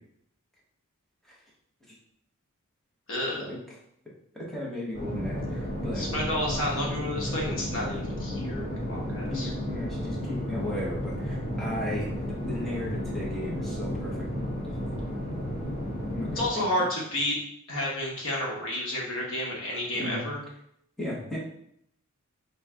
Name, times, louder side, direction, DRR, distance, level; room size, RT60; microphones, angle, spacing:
voice 1, 3.1-3.4 6.0-9.5 16.4-17.4 17.7-20.4, left 1 dB, 60° left, -2 dB, 1.0 m, -31 dB
voice 2, 4.3-6.1 6.5-6.8 9.2-12.1 12.4-14.2 16.1-16.9 19.9-20.2 21.0-21.4, left 1 dB, ahead, -6 dB, 1.0 m, -36 dB
sound 1, 4.9-16.5, equal, 35° left, 1.2 m, -33 dB
3.3 x 3.1 x 3.5 m, 0.71 s
head